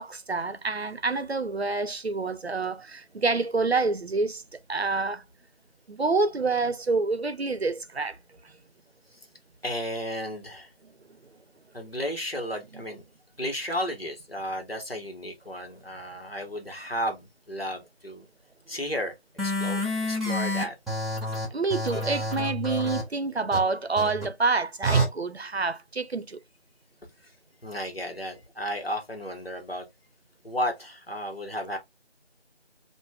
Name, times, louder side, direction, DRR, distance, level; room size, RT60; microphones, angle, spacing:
voice 1, 0.0-4.4 4.7-5.2 5.9-8.2 21.5-26.4, right 3 dB, 70° right, 0.6 m, -27 dB
voice 2, 9.6-10.7 11.7-13.0 13.4-18.3 18.7-19.1 19.4-19.8 20.1-20.8 27.2-27.3 27.6-29.9 30.4-31.8, equal, 60° left, 1.3 m, -33 dB
sound 1, 19.4-23.0 23.5-23.6 24.0-24.2 24.8-25.1, equal, ahead, 0.8 m, -28 dB
5.5 x 2.5 x 2.3 m
figure-of-eight pair, 180°, 33 cm